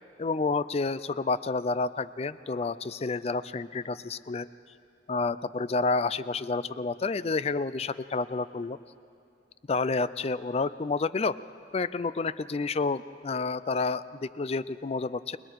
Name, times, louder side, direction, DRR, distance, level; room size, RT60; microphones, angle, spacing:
voice 1, 0.2-4.5 5.1-8.8 9.7-11.4 11.7-15.4, left 3 dB, 35° left, 16 dB, 0.4 m, -29 dB
30.0 x 21.0 x 4.7 m, 2.6 s
head